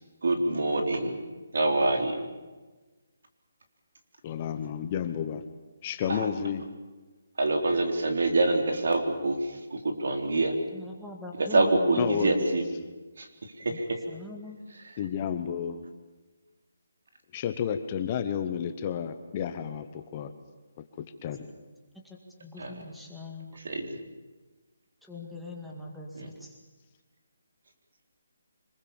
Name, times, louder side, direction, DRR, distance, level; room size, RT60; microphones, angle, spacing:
voice 1, 0.2-1.2 1.5-2.3 6.1-6.3 7.4-9.4 9.7-10.5 11.5-12.6 13.2-13.3 13.6-13.9 22.6-22.7 23.6-24.0 26.2-26.3, right 2 dB, 65° right, 4 dB, 3.9 m, -25 dB
voice 2, 4.2-5.4 5.8-6.7 12.0-12.5 15.0-15.9 17.3-20.3 21.0-21.5, left 8 dB, 25° left, 8 dB, 1.0 m, -31 dB
voice 3, 10.7-12.4 13.7-13.8 14.1-14.6 21.9-23.6 25.0-26.6, left 1 dB, ahead, -4 dB, 2.1 m, -42 dB
26.0 x 21.0 x 7.3 m, 1.3 s
hypercardioid pair, 170°, 0 cm